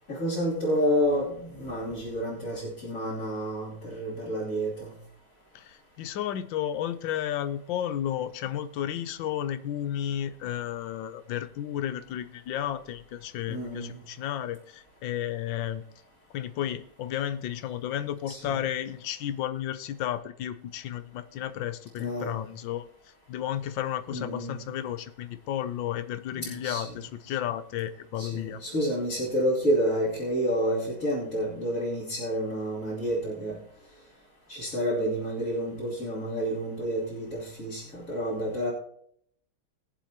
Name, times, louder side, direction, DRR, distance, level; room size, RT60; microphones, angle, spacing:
voice 1, 0.1-4.9 13.5-14.0 18.3-18.4 22.0-22.3 24.1-24.7 26.4-26.8 28.2-33.6 34.5-38.7, equal, 45° left, -7 dB, 3.2 m, -29 dB
voice 2, 5.5-15.8 16.3-28.6, left 11 dB, 85° left, 12 dB, 1.5 m, -33 dB
21.0 x 7.2 x 2.9 m, 0.67 s
omnidirectional pair, 2.0 m